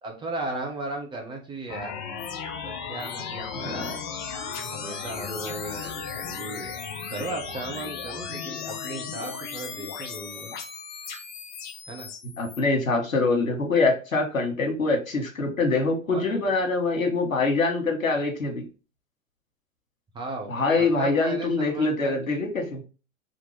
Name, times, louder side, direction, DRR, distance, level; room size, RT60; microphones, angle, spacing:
voice 1, 0.0-1.9 2.6-3.9 4.7-6.7 7.1-10.6 11.9-12.1 16.1-16.5 20.1-22.3, right 2 dB, 10° right, 0 dB, 0.8 m, -36 dB
sound 1, 1.7-12.6, left 6 dB, 35° left, 0.9 m, -36 dB
voice 2, 3.5-4.0 12.4-18.6 20.5-22.8, left 3 dB, 80° left, 3 dB, 1.4 m, -24 dB
4.3 x 2.9 x 3.2 m, 0.33 s
figure-of-eight pair, 105°, 40 cm